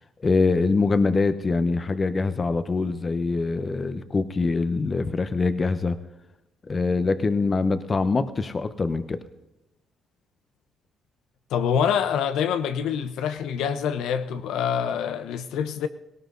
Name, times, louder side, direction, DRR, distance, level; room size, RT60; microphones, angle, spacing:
voice 1, 0.2-6.0 6.7-9.2, left 3 dB, 35° left, 1.1 m, -24 dB
voice 2, 11.5-15.9, left 8 dB, 85° left, 0.9 m, -26 dB
18.0 x 18.0 x 4.0 m
cardioid pair, 90°, 0 cm